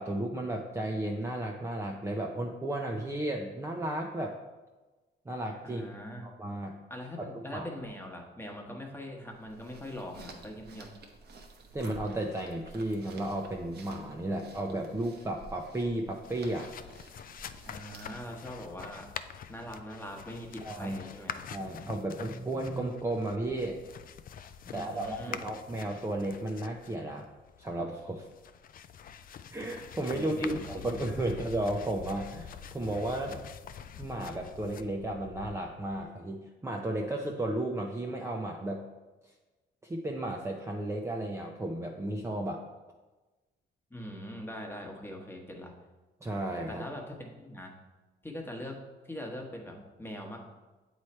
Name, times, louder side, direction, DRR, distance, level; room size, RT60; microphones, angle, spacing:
voice 1, 0.0-4.4 5.3-5.9 6.2-6.8 7.2-7.7 11.7-16.7 20.6-21.0 21.5-23.8 24.7-27.3 27.6-28.3 29.5-33.4 34.0-38.8 39.8-42.6 46.2-46.8, right 1 dB, 15° right, 0 dB, 0.6 m, -34 dB
voice 2, 5.6-6.2 6.9-10.9 17.6-19.1 19.5-21.4 24.6-25.4 30.1-30.8 43.9-45.7 46.7-47.7 48.2-48.8 49.0-50.4, left 1 dB, 10° left, 1 dB, 1.2 m, -42 dB
sound 1, 9.3-18.3, right 3 dB, 55° right, 1.0 m, -51 dB
sound 2, 16.1-36.0, left 8 dB, 45° left, 0.4 m, -46 dB
8.0 x 3.2 x 4.3 m, 1.2 s
cardioid pair, 90°, 20 cm